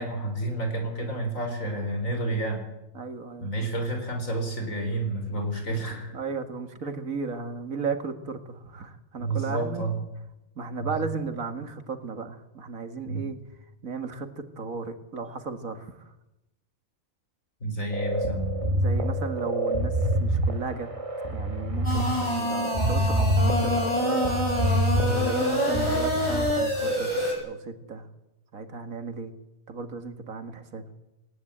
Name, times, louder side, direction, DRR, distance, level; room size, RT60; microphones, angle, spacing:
voice 1, 0.0-2.6 3.4-6.1 9.2-10.0 10.8-10.9 13.1-13.2 17.6-18.5 21.9-22.1 24.9-25.3, right 2 dB, 75° left, 5 dB, 4.9 m, -30 dB
voice 2, 2.9-3.5 6.1-9.9 10.6-13.4 13.8-15.9 18.7-19.9 20.2-20.9 21.3-24.2 25.1-28.1 28.5-29.3 29.7-30.8, right 4 dB, 80° right, 7 dB, 2.3 m, -35 dB
sound 1, 17.9-26.5, right 1 dB, 25° right, 2.0 m, -26 dB
sound 2, 21.8-27.3, left 1 dB, 20° left, 7.9 m, -27 dB
19.0 x 19.0 x 8.7 m, 0.95 s
omnidirectional pair, 1.4 m